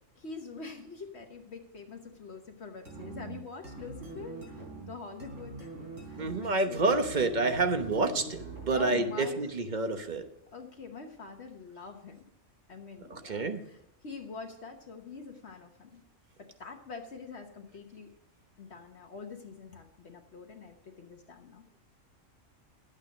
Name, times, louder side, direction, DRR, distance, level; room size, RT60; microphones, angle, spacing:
voice 1, 0.2-5.7 6.1-6.9 8.7-9.4 10.5-12.2 12.7-13.8 14.0-16.0 16.4-18.1 18.6-21.6, left 4 dB, 60° left, 3 dB, 1.3 m, -45 dB
sound 1, 2.9-9.3, right 2 dB, 80° right, 3.6 m, -43 dB
voice 2, 6.2-10.2 13.1-13.6, right 3 dB, 40° right, 7 dB, 1.1 m, -28 dB
11.5 x 8.5 x 5.2 m, 0.83 s
omnidirectional pair, 1.3 m